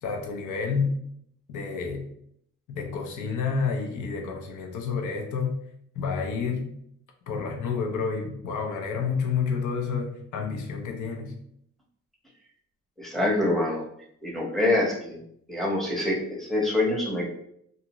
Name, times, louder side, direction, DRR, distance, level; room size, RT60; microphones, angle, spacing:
voice 1, 0.0-0.9 1.5-2.1 2.7-5.6 6.0-6.7 7.3-11.4, left 5 dB, 80° left, 3 dB, 0.7 m, -29 dB
voice 2, 13.0-13.8 14.2-15.2 15.5-17.3, left 2 dB, ahead, -2 dB, 0.8 m, -25 dB
2.6 x 2.1 x 2.9 m, 0.71 s
cardioid pair, 90°, 30 cm